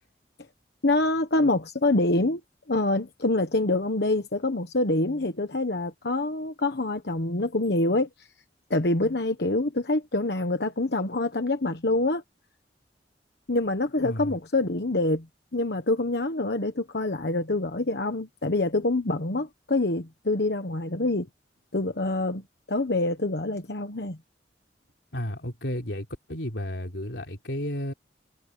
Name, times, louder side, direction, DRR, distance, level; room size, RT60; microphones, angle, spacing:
voice 1, 0.8-2.4 2.7-8.3 8.7-12.2 13.5-15.3 15.5-21.3 21.7-24.2, left 2 dB, 65° left, 1.2 m, -26 dB
voice 2, 14.0-14.4 25.1-27.9, equal, 80° left, 3.6 m, -33 dB
head